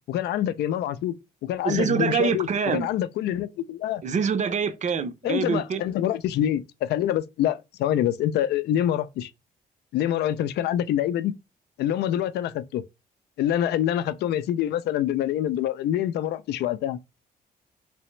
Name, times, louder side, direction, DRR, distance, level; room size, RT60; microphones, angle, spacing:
voice 1, 0.1-1.2 1.4-2.5 2.7-4.0 5.2-9.3 9.9-11.3 11.8-12.8 13.4-17.0, left 11 dB, 90° left, 0.4 m, -26 dB
voice 2, 1.6-2.9 4.0-5.8, right 6 dB, 45° right, 0.5 m, -25 dB
3.3 x 2.9 x 3.1 m
cardioid pair, 105°, 17 cm